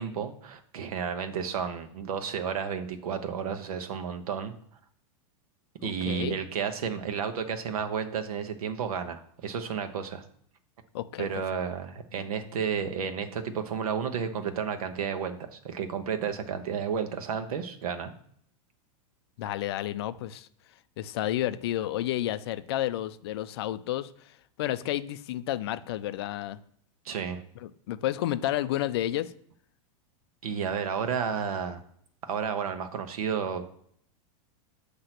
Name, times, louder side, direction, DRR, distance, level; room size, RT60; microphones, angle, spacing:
voice 1, 0.0-4.5 5.8-10.2 11.2-18.1 27.0-27.4 30.4-31.8 32.2-33.8, right 7 dB, 90° right, 7 dB, 1.0 m, -32 dB
voice 2, 5.8-6.4 10.9-11.3 19.4-20.5 21.0-26.6 27.6-29.3, left 13 dB, 45° left, 13 dB, 0.4 m, -31 dB
7.9 x 2.9 x 5.9 m, 0.66 s
supercardioid pair, 175°, 18 cm